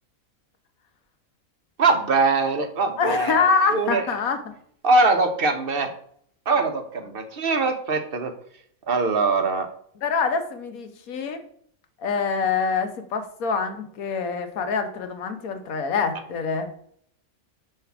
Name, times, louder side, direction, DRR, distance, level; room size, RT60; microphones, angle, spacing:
voice 1, 1.8-4.0 4.8-5.9 6.5-8.3 8.9-9.7, right 3 dB, 45° right, 7 dB, 0.9 m, -22 dB
voice 2, 3.0-4.4 10.0-11.4 12.0-16.7, left 5 dB, 75° left, 7 dB, 1.4 m, -25 dB
6.9 x 3.4 x 5.9 m, 0.65 s
omnidirectional pair, 1.5 m